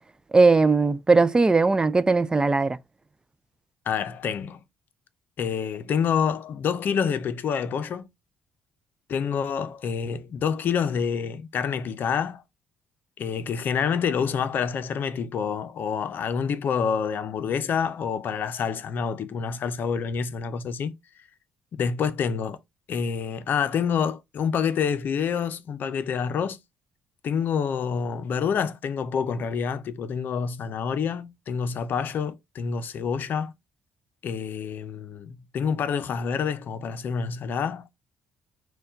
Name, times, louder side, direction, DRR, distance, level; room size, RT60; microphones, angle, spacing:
voice 1, 0.3-2.8, right 3 dB, 20° right, 0.4 m, -19 dB
voice 2, 3.9-4.6 5.4-8.1 9.1-12.4 13.2-20.9 21.8-22.6 22.9-26.6 27.2-33.5 34.2-37.9, left 7 dB, 60° left, 0.6 m, -27 dB
4.3 x 2.3 x 3.8 m
supercardioid pair, 65°, 4 cm